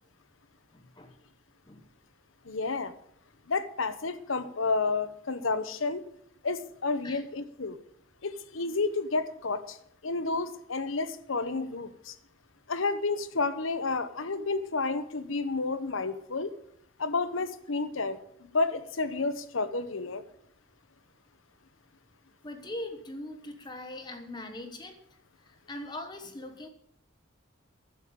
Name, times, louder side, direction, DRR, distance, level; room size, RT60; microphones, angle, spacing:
voice 1, 0.7-1.1 1.7-1.8 7.0-7.2 22.4-25.0 25.5-26.7, left 1 dB, 20° left, 6 dB, 1.1 m, -41 dB
voice 2, 2.4-2.9 3.5-6.0 6.4-7.8 8.2-9.8 10.0-12.1 12.7-16.5 17.0-20.2, left 3 dB, 75° left, 12 dB, 1.0 m, -31 dB
11.5 x 7.1 x 8.6 m, 0.71 s
head